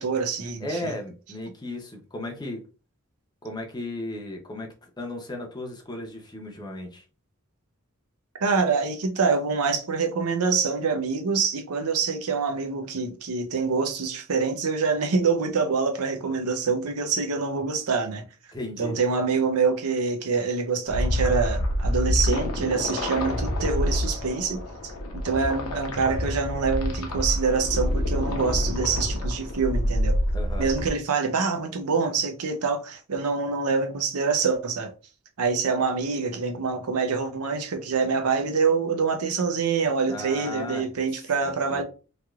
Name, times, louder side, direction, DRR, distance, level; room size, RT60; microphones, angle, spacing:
voice 1, 0.0-0.9 8.4-18.2 18.8-24.6 25.1-30.2 30.6-34.9 35.4-41.8, right 5 dB, 80° right, 0.6 m, -25 dB
voice 2, 0.6-2.6 3.4-7.0 18.5-18.9 30.3-30.7 40.0-40.9 41.4-41.8, left 1 dB, 20° left, 0.6 m, -35 dB
sound 1, 20.9-30.9, left 1 dB, 80° left, 0.7 m, -27 dB
3.1 x 2.8 x 2.3 m
head